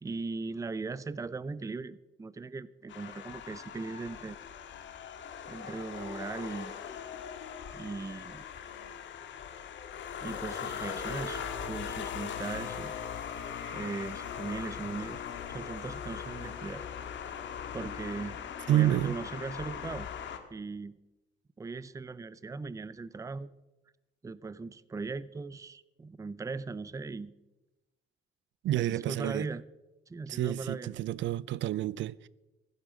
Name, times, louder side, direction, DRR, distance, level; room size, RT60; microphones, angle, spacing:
voice 1, 0.0-4.4 5.5-6.7 7.7-8.4 10.2-11.4 11.7-12.9 13.7-15.2 15.5-16.8 17.7-18.4 18.7-20.1 20.5-21.0 21.6-23.5 24.2-27.3 28.7-29.6 30.1-30.9, right 4 dB, 15° right, 0.5 m, -39 dB
sound 1, 2.9-20.4, left 8 dB, 70° left, 1.6 m, -40 dB
voice 2, 18.7-19.2 28.6-29.5 30.3-32.3, right 13 dB, 70° right, 0.5 m, -29 dB
15.5 x 11.5 x 4.9 m
cardioid pair, 90°, 20 cm